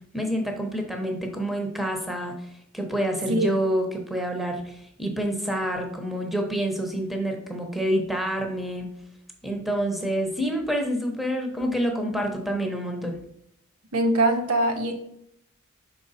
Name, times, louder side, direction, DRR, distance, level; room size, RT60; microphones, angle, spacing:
voice 1, 0.1-2.4 2.7-8.9 9.4-13.2, equal, ahead, 3 dB, 0.9 m, -27 dB
voice 2, 13.9-14.9, right 1 dB, 85° right, 4 dB, 1.1 m, -22 dB
5.9 x 4.9 x 4.1 m, 0.74 s
head